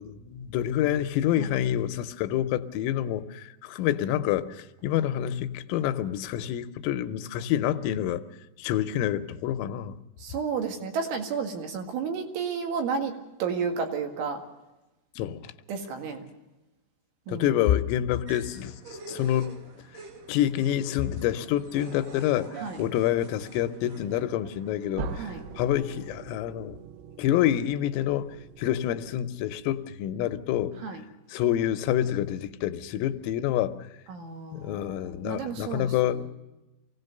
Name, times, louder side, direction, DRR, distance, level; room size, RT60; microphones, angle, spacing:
voice 1, 0.0-8.2 8.6-9.9 15.2-15.5 17.3-18.8 19.1-19.6 20.3-22.5 22.8-25.1 25.6-26.8 27.2-30.8 31.3-33.8 34.5-36.3, left 11 dB, 80° left, 3.4 m, -27 dB
voice 2, 10.2-13.1 13.4-14.4 15.7-16.2 17.3-17.6 22.6-22.8 25.2-25.4 30.8-31.0 34.1-36.3, right 5 dB, 70° right, 4.2 m, -32 dB
sound 1, 18.3-26.1, right 5 dB, 50° right, 3.1 m, -47 dB
sound 2, 25.0-29.7, right 4 dB, 85° right, 2.2 m, -41 dB
24.5 x 17.0 x 6.6 m
omnidirectional pair, 6.0 m